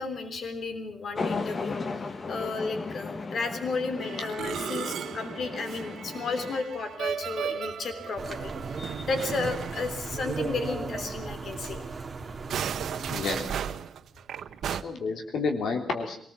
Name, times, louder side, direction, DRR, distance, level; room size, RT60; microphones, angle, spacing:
voice 1, 0.0-11.8 13.3-13.4, left 4 dB, 55° left, 8 dB, 3.4 m, -33 dB
sound 1, 1.2-6.6, left 4 dB, 35° left, 1.4 m, -36 dB
Musical instrument, 4.0-10.8 11.1-11.3 11.6-11.7 12.3-14.8, right 8 dB, 85° right, 1.0 m, -36 dB
sound 2, 8.2-13.5, right 4 dB, 25° right, 2.4 m, -36 dB
voice 2, 13.1-13.5 14.7-16.2, left 4 dB, 85° left, 5 dB, 3.3 m, -30 dB
24.0 x 19.0 x 7.5 m, 0.64 s
wide cardioid pair, 160°, 0 cm